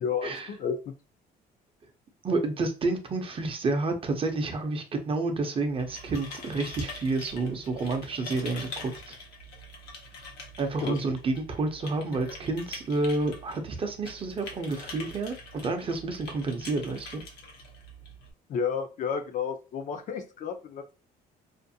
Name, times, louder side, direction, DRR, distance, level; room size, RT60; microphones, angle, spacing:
voice 1, 0.0-0.9 10.8-11.0 18.5-20.9, left 6 dB, 50° left, 0.5 m, -31 dB
voice 2, 2.2-9.2 10.6-15.4 15.6-17.2, right 3 dB, 35° right, 0.6 m, -29 dB
sound 1, 5.6-18.3, left 2 dB, 80° left, 0.8 m, -44 dB
2.5 x 2.1 x 2.7 m
cardioid pair, 110°, 17 cm